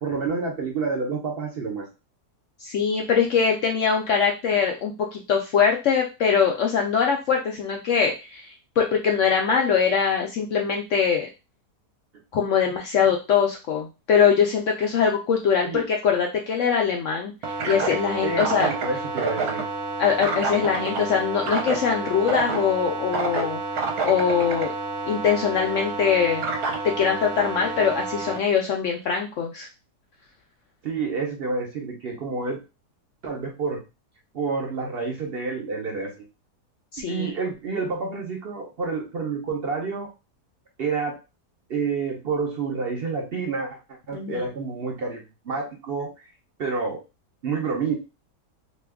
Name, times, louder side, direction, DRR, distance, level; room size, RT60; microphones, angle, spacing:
voice 1, 0.0-1.9 15.6-15.8 18.2-19.6 30.8-32.6 33.2-33.8 34.3-36.2 37.1-40.1 40.8-41.2 41.7-43.8 44.1-46.1 46.6-47.0 47.4-47.9, right 4 dB, 55° right, 1 dB, 0.7 m, -28 dB
voice 2, 2.6-11.3 12.3-18.7 20.0-23.6 24.0-24.7 25.1-26.4 26.8-29.7 36.9-37.3 44.1-44.4, left 7 dB, 75° left, 1 dB, 0.7 m, -22 dB
sound 1, 17.4-28.4, right 4 dB, 70° right, 1.1 m, -29 dB
2.8 x 2.3 x 3.4 m, 0.28 s
omnidirectional pair, 1.8 m